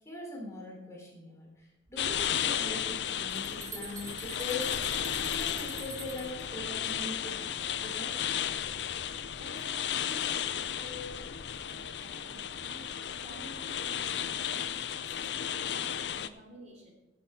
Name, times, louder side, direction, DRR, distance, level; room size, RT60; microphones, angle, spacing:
voice 1, 0.0-4.8 5.2-8.2, left 2 dB, 15° left, -2 dB, 3.5 m, -41 dB
sound 1, 2.0-16.3, left 9 dB, 65° left, 0.6 m, -34 dB
sound 2, 3.3-6.4, right 4 dB, 20° right, 1.9 m, -45 dB
voice 2, 9.0-11.2 11.6-16.9, left 1 dB, 40° right, -1 dB, 3.3 m, -51 dB
16.0 x 7.2 x 4.5 m, 1.1 s
head